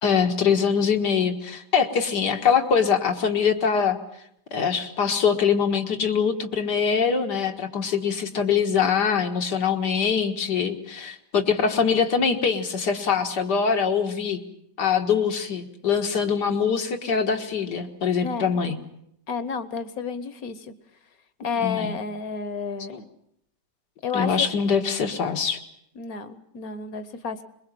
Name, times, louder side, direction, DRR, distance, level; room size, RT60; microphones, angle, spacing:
voice 1, 0.0-4.0 4.5-14.4 14.8-18.8 21.6-21.9 22.9-23.0 24.1-25.6, left 6 dB, 80° left, 5 dB, 2.2 m, -23 dB
voice 2, 18.2-18.5 19.3-20.7 21.4-23.0 24.0-24.5 25.9-27.4, left 5 dB, 60° left, 13 dB, 1.6 m, -31 dB
22.0 x 22.0 x 7.6 m, 0.75 s
omnidirectional pair, 1.8 m